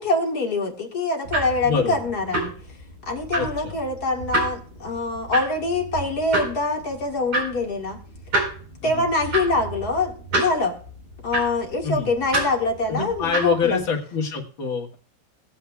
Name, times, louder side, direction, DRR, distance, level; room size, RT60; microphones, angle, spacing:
voice 1, 0.0-2.5 3.1-8.0 8.8-10.8 11.2-13.8, left 2 dB, 50° left, 1 dB, 2.4 m, -24 dB
sound 1, 1.2-13.9, right 1 dB, 85° right, 5.4 m, -30 dB
voice 2, 1.6-2.0 3.3-3.7 8.8-9.1 11.8-12.1 12.9-15.0, left 5 dB, 80° left, 1 dB, 2.5 m, -25 dB
19.0 x 8.6 x 2.3 m, 0.43 s
omnidirectional pair, 2.1 m